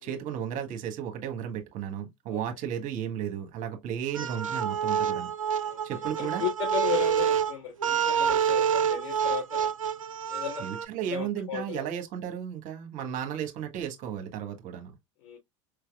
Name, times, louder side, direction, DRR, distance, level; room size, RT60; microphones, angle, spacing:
voice 1, 0.0-5.3 5.6-6.4 10.6-14.9, right 9 dB, 50° right, 1.3 m, -34 dB
sound 1, 4.1-10.8, right 8 dB, 85° right, 0.5 m, -27 dB
voice 2, 6.2-9.7 10.3-10.6 11.1-11.9 13.0-13.1 15.2-15.4, left 8 dB, 65° left, 3.3 m, -35 dB
5.0 x 3.3 x 2.3 m
figure-of-eight pair, 75°, 17 cm